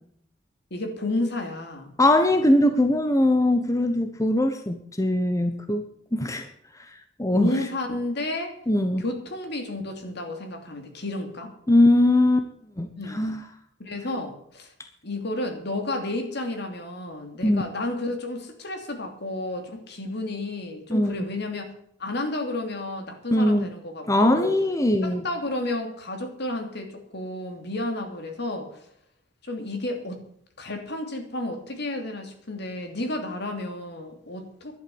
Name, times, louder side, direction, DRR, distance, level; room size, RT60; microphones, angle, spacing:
voice 1, 0.7-1.9 7.3-8.6 9.0-11.5 13.0-13.2 13.8-14.7 15.0-21.7 22.0-24.6 25.0-28.8 29.4-30.2 30.6-34.8, left 2 dB, 60° left, 5 dB, 3.0 m, -31 dB
voice 2, 2.0-5.8 6.1-6.5 7.2-7.5 8.7-9.1 11.7-12.5 12.8-13.4 17.4-17.6 20.9-21.2 23.3-23.7 24.1-25.2, left 1 dB, 15° left, 7 dB, 1.1 m, -21 dB
11.5 x 11.0 x 7.1 m, 0.70 s
head